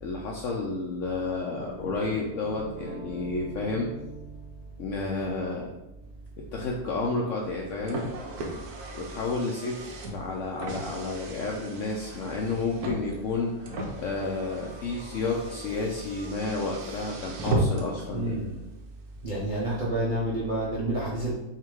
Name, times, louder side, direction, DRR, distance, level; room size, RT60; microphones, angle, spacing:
voice 1, 0.0-3.9 4.8-5.7 6.5-8.1 8.9-13.7 14.0-18.4, left 3 dB, 75° left, -1 dB, 0.7 m, -31 dB
sound 1, 1.5-9.4, right 3 dB, 20° left, 1.0 m, -46 dB
Car, 7.4-18.1, right 1 dB, 65° right, 1.1 m, -35 dB
voice 2, 18.1-18.6 19.2-21.3, right 1 dB, 50° right, -5 dB, 0.6 m, -29 dB
3.6 x 2.8 x 4.5 m, 0.97 s
omnidirectional pair, 1.9 m